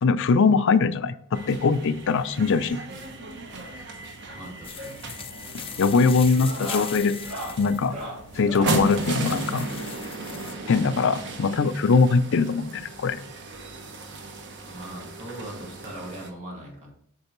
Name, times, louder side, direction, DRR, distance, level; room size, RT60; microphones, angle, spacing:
voice 1, 0.0-2.8 5.8-7.2 7.6-8.0 8.4-9.7 10.7-13.2, left 4 dB, 60° left, 11 dB, 0.5 m, -21 dB
sound 1, 1.3-16.3, right 2 dB, 55° right, 1.0 m, -35 dB
voice 2, 4.3-5.0 14.6-16.9, right 1 dB, 35° right, -2 dB, 2.3 m, -40 dB
sound 2, 4.6-10.5, left 7 dB, 25° left, 0.7 m, -40 dB
sound 3, 4.8-5.2 5.5-5.8 6.4-8.9 10.2-11.6 12.6-12.7 12.9-13.1 13.5-13.6 14.9-15.0 16.3-16.4, right 1 dB, 75° right, 2.0 m, -39 dB
8.4 x 6.5 x 3.1 m, 0.63 s
head